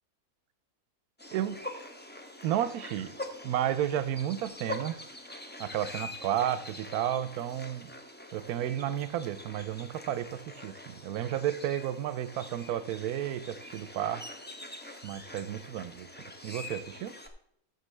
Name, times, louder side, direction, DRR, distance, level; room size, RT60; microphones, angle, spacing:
sound 1, 1.2-17.3, left 1 dB, 15° left, 0.4 m, -44 dB
voice 1, 2.4-3.2 3.4-5.0 5.6-7.9 8.3-14.2 15.0-17.2, right 11 dB, 85° right, 14 dB, 1.1 m, -32 dB
13.5 x 6.4 x 3.3 m, 0.71 s
omnidirectional pair, 1.6 m